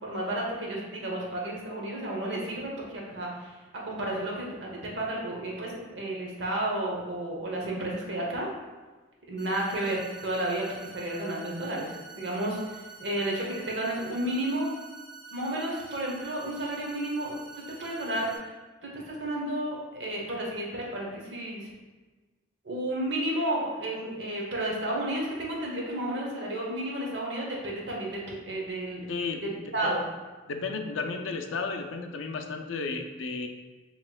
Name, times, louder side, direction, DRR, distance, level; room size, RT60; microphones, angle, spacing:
voice 1, 0.0-3.6 3.8-8.5 9.3-14.7 15.3-17.4 17.7-18.5 18.8-21.7 22.6-29.1 29.7-30.0, right 1 dB, 70° right, -2 dB, 0.9 m, -32 dB
sound 1, 9.4-18.4, right 5 dB, 15° left, 0.7 m, -47 dB
voice 2, 29.1-29.9 30.5-33.5, left 4 dB, 90° left, 5 dB, 0.4 m, -33 dB
5.6 x 3.0 x 2.2 m, 1.3 s
head